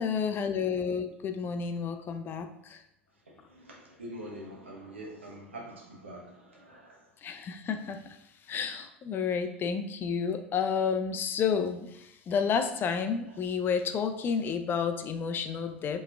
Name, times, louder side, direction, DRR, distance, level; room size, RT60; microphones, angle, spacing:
voice 1, 0.0-2.8 7.2-8.2 8.5-16.0, left 6 dB, 35° left, 7 dB, 0.5 m, -30 dB
voice 2, 3.3-7.1 12.3-12.4 13.3-13.4, right 1 dB, 85° right, -1 dB, 1.0 m, -45 dB
5.6 x 3.1 x 2.3 m, 0.78 s
figure-of-eight pair, 75°, 6 cm